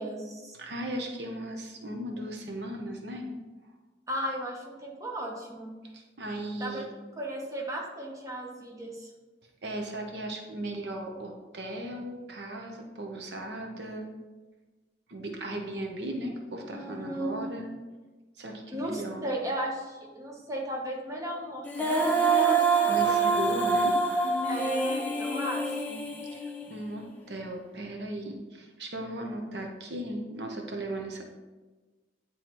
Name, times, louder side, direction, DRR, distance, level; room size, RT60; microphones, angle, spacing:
voice 1, 0.0-0.6 4.1-5.7 6.6-6.8 7.2-9.1 16.7-17.3 18.7-23.4 24.5-26.0, right 1 dB, 20° right, -2 dB, 1.0 m, -36 dB
voice 2, 0.6-3.3 5.9-6.9 9.6-14.1 15.1-17.7 18.4-19.2 22.9-23.9 26.3-31.2, right 1 dB, 70° right, 2 dB, 0.8 m, -37 dB
Female singing, 21.7-26.9, right 3 dB, 10° left, 0.7 m, -26 dB
9.3 x 3.9 x 3.0 m, 1.3 s
head